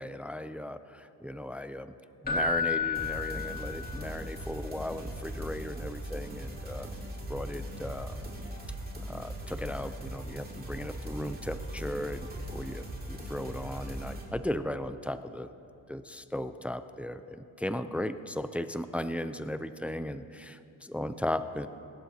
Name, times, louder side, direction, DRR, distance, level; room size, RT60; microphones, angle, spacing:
voice 1, 0.0-1.9 2.2-6.9 7.3-8.2 9.1-15.5 15.9-21.7, left 1 dB, 5° right, 11 dB, 0.4 m, -36 dB
Keyboard (musical), 2.2-4.2 7.5-7.6, left 5 dB, 20° left, 2.2 m, -31 dB
sound 1, 2.9-14.2, right 1 dB, 25° right, 2.4 m, -40 dB
22.5 x 11.5 x 2.8 m, 2.8 s
cardioid pair, 85°, 39 cm